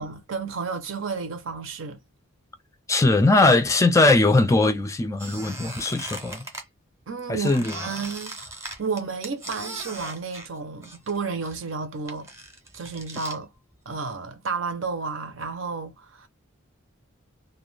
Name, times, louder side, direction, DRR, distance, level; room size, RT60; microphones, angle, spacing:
voice 1, 0.0-2.0 7.1-12.3 12.7-13.5 13.9-16.3, right 5 dB, 65° right, 0.6 m, -32 dB
voice 2, 2.9-6.5 7.3-7.7, left 2 dB, 15° left, 0.3 m, -20 dB
Squeak, 5.2-6.6 7.4-11.2 11.4-13.4, right 1 dB, 15° right, 0.7 m, -39 dB
2.3 x 2.2 x 3.1 m
head